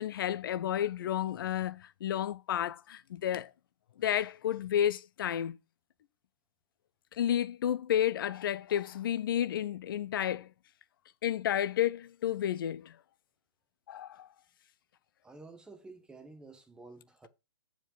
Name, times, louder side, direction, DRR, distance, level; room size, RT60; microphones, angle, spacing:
voice 1, 0.0-3.5 4.0-5.6 7.1-10.5 11.2-13.0 13.9-14.3, left 10 dB, 45° left, 0.6 m, -31 dB
voice 2, 15.2-17.3, right 3 dB, 5° right, 1.0 m, -51 dB
7.2 x 4.5 x 5.2 m
figure-of-eight pair, 120°, 16 cm